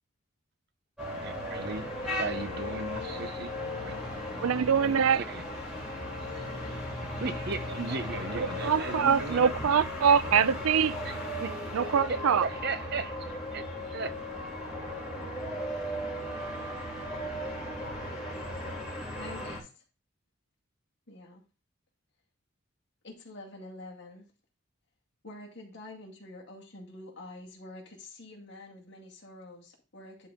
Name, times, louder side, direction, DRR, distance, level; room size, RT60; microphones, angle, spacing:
sound 1, 1.0-19.6, left 1 dB, ahead, 2.9 m, -36 dB
voice 1, 1.1-3.5 3.8-4.1 4.8-5.4 6.1-6.6 7.1-9.5 10.1-10.2 11.0-11.5 12.1-13.6 13.9-14.1, right 3 dB, 50° right, 0.7 m, -37 dB
voice 2, 4.4-5.2 8.3-10.9 11.7-12.5, right 7 dB, 85° right, 0.4 m, -24 dB
voice 3, 19.2-19.8 21.1-21.4 23.0-24.2 25.2-30.3, left 2 dB, 55° left, 2.2 m, -47 dB
11.0 x 4.2 x 3.6 m
head